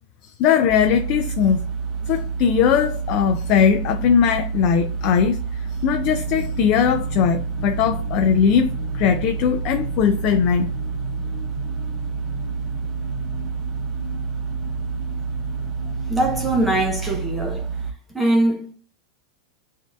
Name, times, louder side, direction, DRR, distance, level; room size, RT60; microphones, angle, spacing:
voice 1, 0.4-1.6 2.1-10.7, left 7 dB, 50° left, 0.4 m, -19 dB
sound 1, 0.7-17.9, right 5 dB, 40° right, 0.7 m, -28 dB
sound 2, 5.9-17.2, left 4 dB, 85° left, 0.9 m, -38 dB
voice 2, 15.8-17.7 18.1-18.7, right 1 dB, 10° right, 0.9 m, -22 dB
5.9 x 2.7 x 2.4 m
hypercardioid pair, 115°, 0 cm